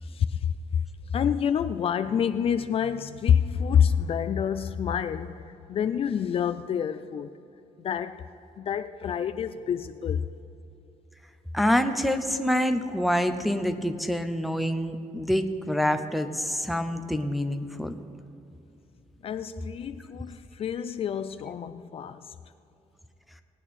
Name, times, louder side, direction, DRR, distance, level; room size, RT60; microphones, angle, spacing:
voice 1, 0.0-0.8 1.1-7.3 7.8-8.3 8.6-10.3 19.2-22.3, left 8 dB, 45° left, 0.4 m, -27 dB
voice 2, 11.5-17.9, equal, ahead, 0.6 m, -26 dB
19.0 x 8.9 x 4.2 m
cardioid pair, 145°, 13 cm